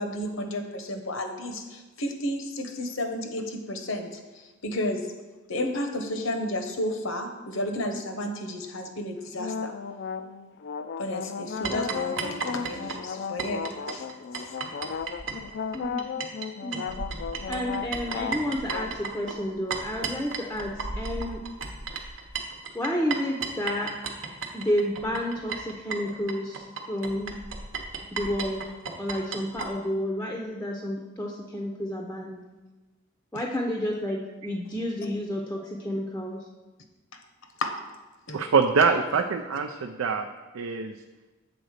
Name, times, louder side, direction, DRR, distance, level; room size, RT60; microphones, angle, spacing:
voice 1, 0.0-4.2 4.6-5.1 5.5-9.7 11.0-14.1 14.4-14.5 37.6-37.7 38.3-38.4, left 1 dB, 80° left, 5 dB, 1.0 m, -32 dB
sound 1, 9.3-18.9, left 6 dB, 55° left, 0.3 m, -35 dB
sound 2, 11.6-16.5 16.7-29.7, right 4 dB, 65° right, 0.9 m, -34 dB
voice 2, 15.7-16.1 16.6-16.9 17.5-21.4 22.7-23.9 24.5-27.3 28.1-28.6 29.0-32.4 33.3-36.4, equal, 10° left, 0 dB, 0.6 m, -30 dB
voice 3, 38.3-39.7 40.0-40.3 40.5-40.9, right 5 dB, 90° right, 4 dB, 0.5 m, -23 dB
7.8 x 4.0 x 6.4 m, 1.2 s
head